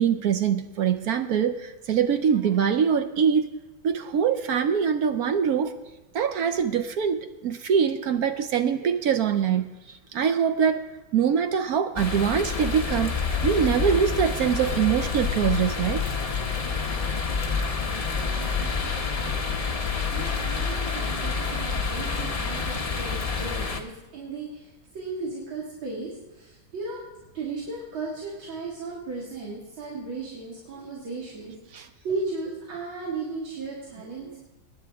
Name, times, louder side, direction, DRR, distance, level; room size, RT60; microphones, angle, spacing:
voice 1, 0.0-3.5 3.8-5.8 6.1-9.8 10.1-10.9 11.1-13.1 13.4-16.0 31.7-31.9 34.2-34.3, right 7 dB, 65° right, 9 dB, 1.0 m, -23 dB
sound 1, 12.0-23.8, left 5 dB, 40° left, 0.5 m, -28 dB
voice 2, 18.0-19.4 19.8-27.0 27.3-34.4, right 3 dB, 90° right, -5 dB, 2.9 m, -36 dB
23.5 x 9.9 x 3.5 m, 1.0 s
omnidirectional pair, 2.1 m